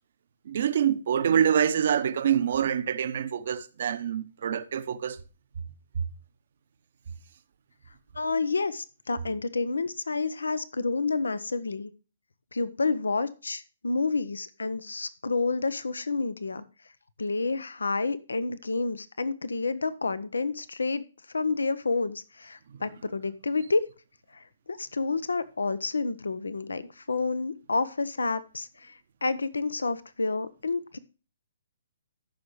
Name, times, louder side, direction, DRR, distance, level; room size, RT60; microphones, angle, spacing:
voice 1, 0.5-5.2, right 8 dB, 55° right, 0.9 m, -26 dB
voice 2, 8.1-11.9 12.5-16.6 17.2-23.9 24.3-31.0, left 3 dB, 80° left, 0.7 m, -29 dB
14.5 x 6.4 x 3.2 m
figure-of-eight pair, 135°, 0 cm